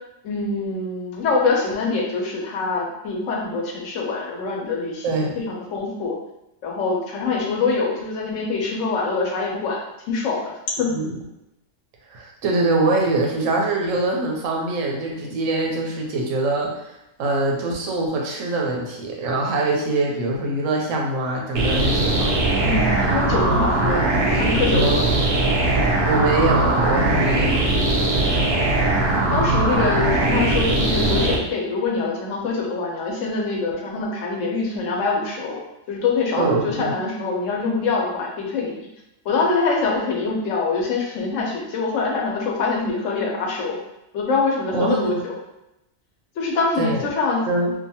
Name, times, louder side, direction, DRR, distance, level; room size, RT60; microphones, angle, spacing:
voice 1, 0.2-6.1 6.6-10.9 22.6-25.1 28.3-28.4 29.3-35.6 35.9-38.9 39.2-43.8 44.1-45.4 46.4-47.4, left 4 dB, 75° left, -1 dB, 1.0 m, -24 dB
voice 2, 5.0-5.4 10.9-11.2 12.1-16.7 17.2-22.5 24.7-25.1 26.1-27.7 36.4-36.9 44.7-45.2 46.8-47.0 47.5-47.7, right 2 dB, 90° right, 0 dB, 1.0 m, -23 dB
sound 1, 21.5-31.4, right 2 dB, 60° right, 0.8 m, -20 dB
2.8 x 2.3 x 2.7 m, 0.89 s
omnidirectional pair, 1.3 m